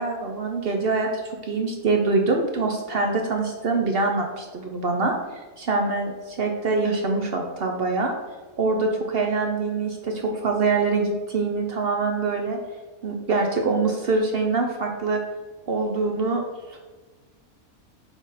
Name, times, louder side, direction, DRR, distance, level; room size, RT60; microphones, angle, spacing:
voice 1, 0.0-8.1 8.6-12.6 13.0-15.2 15.7-16.4 16.7-16.8, right 3 dB, 55° right, 2 dB, 0.7 m, -24 dB
6.2 x 3.8 x 4.0 m, 1.3 s
omnidirectional pair, 1.5 m